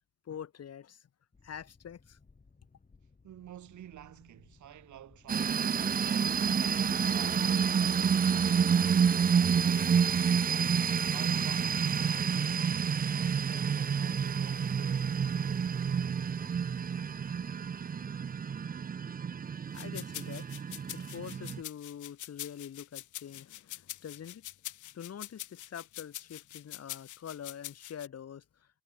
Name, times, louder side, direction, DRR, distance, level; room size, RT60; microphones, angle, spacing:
voice 1, 0.3-1.1 1.4-2.2 19.7-20.5 20.9-24.5 24.9-28.7, left 8 dB, 55° left, 3.4 m, -45 dB
Boat Water vehicle, 1.3-18.8, left 4 dB, 30° left, 5.9 m, -62 dB
voice 2, 3.2-7.7 8.2-10.5 11.1-15.2, right 12 dB, 75° right, 6.3 m, -52 dB
sound 1, 5.3-21.6, right 7 dB, 30° right, 0.6 m, -29 dB
sound 2, 19.7-28.1, left 14 dB, 75° left, 1.3 m, -44 dB
cardioid pair, 90°, 30 cm